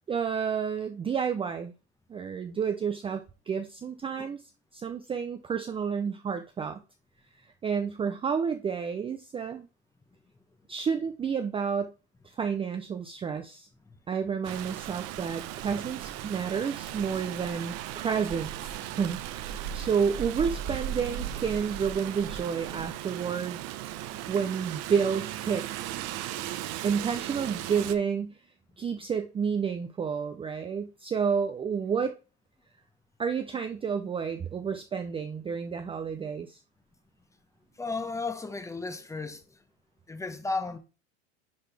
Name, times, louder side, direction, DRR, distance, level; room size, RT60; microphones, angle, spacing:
voice 1, 0.1-1.7 2.1-4.4 4.7-6.8 7.6-9.7 10.7-11.9 12.2-13.7 14.1-18.5 18.9-23.6 24.3-25.6 26.8-28.3 28.8-32.1 33.2-36.6, right 6 dB, 15° right, 0.5 m, -30 dB
Rain, 14.4-28.0, right 11 dB, 50° right, 0.8 m, -37 dB
voice 2, 37.8-39.4 40.1-40.8, left 3 dB, 10° left, 0.8 m, -34 dB
10.5 x 4.1 x 3.4 m
supercardioid pair, 115°, 34 cm